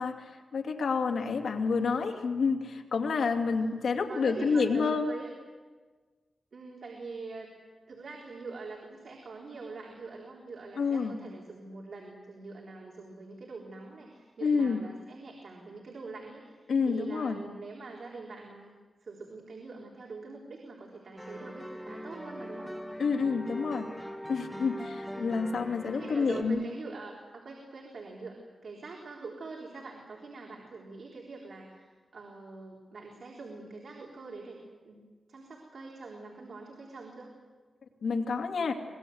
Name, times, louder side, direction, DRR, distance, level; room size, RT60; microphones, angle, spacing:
voice 1, 0.0-5.1 10.8-11.2 14.4-14.8 16.7-17.4 23.0-23.9 24.3-26.6 38.0-38.7, left 5 dB, 80° left, 3 dB, 2.7 m, -29 dB
voice 2, 3.3-3.7 4.1-5.3 6.5-7.5 7.9-16.6 16.8-18.7 19.0-22.7 25.9-28.4 28.6-34.6 34.8-35.0 35.3-37.3, right 3 dB, 60° right, -2 dB, 4.0 m, -44 dB
sound 1, 21.2-26.4, equal, ahead, 2.3 m, -41 dB
25.0 x 20.5 x 8.0 m, 1.4 s
wide cardioid pair, 115°, 0 cm